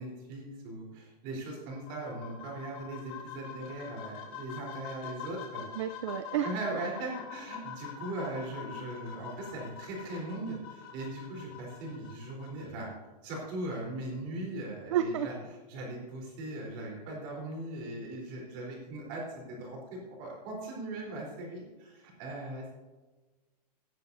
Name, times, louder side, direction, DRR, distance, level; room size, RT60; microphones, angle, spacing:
voice 1, 0.0-5.6 6.4-12.9 13.2-15.3 15.7-22.7, right 2 dB, 25° right, -2 dB, 3.6 m, -39 dB
sound 1, 1.7-12.7, left 8 dB, 35° left, 2.6 m, -45 dB
voice 2, 5.7-6.5 14.9-15.3, right 9 dB, 45° right, 9 dB, 0.6 m, -30 dB
17.5 x 9.1 x 2.6 m, 1.2 s
supercardioid pair, 180°, 21 cm